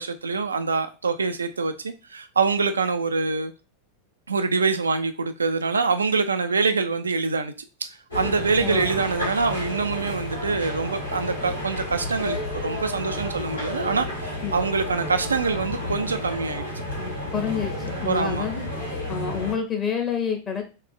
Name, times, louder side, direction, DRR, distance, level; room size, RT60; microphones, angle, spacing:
voice 1, 0.0-3.5 4.3-7.5 7.8-16.6 18.1-18.4, right 4 dB, 75° right, 0.4 m, -25 dB
sound 1, 8.1-19.5, left 1 dB, 85° left, 1.9 m, -31 dB
voice 2, 8.6-9.0 14.4-14.6 17.3-17.7 18.0-18.7 19.1-20.6, left 7 dB, 25° left, 1.3 m, -28 dB
3.3 x 3.2 x 3.7 m
figure-of-eight pair, 90°, 0 cm